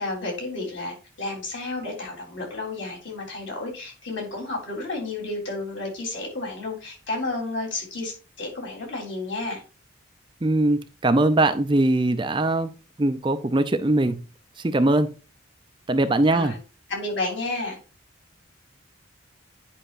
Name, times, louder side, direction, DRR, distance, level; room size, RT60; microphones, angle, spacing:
voice 1, 0.0-9.6 16.3-16.6 16.9-17.8, left 2 dB, 65° left, -1 dB, 3.7 m, -31 dB
voice 2, 10.4-12.7 13.0-14.2 14.6-15.1 15.9-16.5, right 2 dB, 25° right, 10 dB, 0.5 m, -21 dB
10.0 x 5.5 x 2.5 m, 0.33 s
head